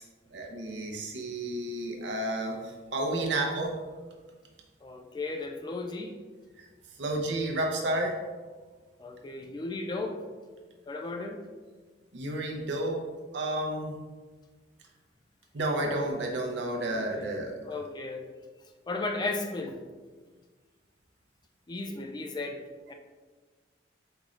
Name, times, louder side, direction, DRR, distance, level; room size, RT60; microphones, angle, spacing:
voice 1, 0.3-3.7 6.6-6.7 7.0-8.2 12.1-13.0 13.3-14.0 15.5-17.5, right 1 dB, 75° right, 0 dB, 0.7 m, -31 dB
voice 2, 4.8-6.2 9.0-10.2 10.9-11.4 16.9-17.3 17.6-18.3 18.9-19.8 21.7-22.6 22.9-23.0, left 3 dB, 25° left, 4 dB, 0.3 m, -35 dB
5.4 x 3.1 x 2.4 m, 1.4 s
head